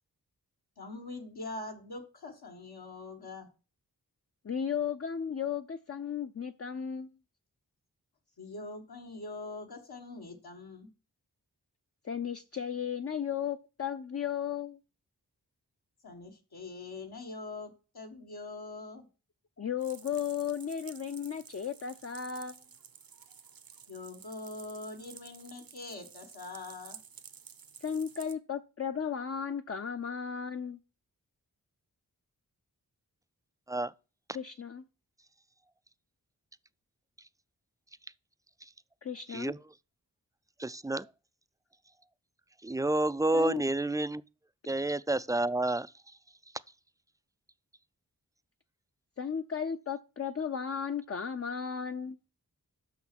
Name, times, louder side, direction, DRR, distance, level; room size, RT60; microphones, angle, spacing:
voice 1, 0.8-3.5 8.4-10.9 16.0-19.0 23.9-27.0, left 3 dB, 75° left, 1.4 m, -43 dB
voice 2, 4.4-7.1 12.0-14.8 19.6-22.6 27.8-30.8 34.3-34.8 39.0-39.5 43.3-43.6 49.2-52.2, left 7 dB, 40° left, 0.6 m, -35 dB
sound 1, 19.8-28.3, right 7 dB, 65° right, 0.8 m, -52 dB
voice 3, 40.6-41.1 42.6-44.2 44.6-45.9, right 2 dB, 10° right, 0.3 m, -29 dB
6.0 x 5.8 x 5.9 m
cardioid pair, 45°, 38 cm